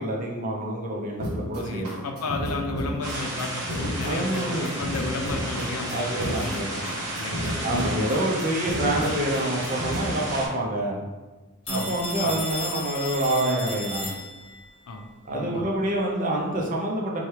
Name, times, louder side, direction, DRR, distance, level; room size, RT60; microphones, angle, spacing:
voice 1, 0.0-2.0 4.0-4.7 5.9-6.8 7.6-11.0 11.7-14.1 15.2-17.2, right 1 dB, 35° right, -1 dB, 0.6 m, -27 dB
sound 1, 1.2-10.2, equal, 90° right, 0.7 m, -32 dB
voice 2, 1.6-6.9 7.1-7.6 11.7-12.4 14.9-15.7, left 3 dB, 80° left, 3 dB, 0.5 m, -33 dB
sound 2, 3.0-10.5, right 1 dB, 50° right, 1.0 m, -33 dB
Telephone, 11.7-14.7, left 1 dB, 25° left, 1.1 m, -34 dB
3.2 x 2.3 x 4.2 m, 1.2 s
head